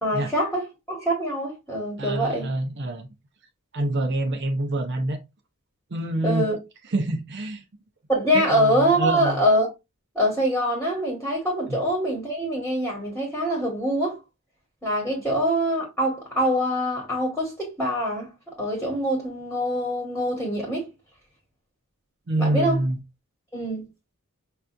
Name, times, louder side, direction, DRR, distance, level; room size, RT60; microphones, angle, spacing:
voice 1, 0.0-2.5 6.2-6.6 8.1-9.7 10.1-14.2 14.8-18.3 18.6-20.9 22.4-22.8 23.5-23.9, equal, 5° left, 1.3 m, -24 dB
voice 2, 2.0-3.1 3.7-5.2 5.9-6.5 6.9-7.6 8.3-9.4 11.7-11.8 22.3-23.0, right 1 dB, 50° right, 0.6 m, -26 dB
5.5 x 2.6 x 2.3 m
head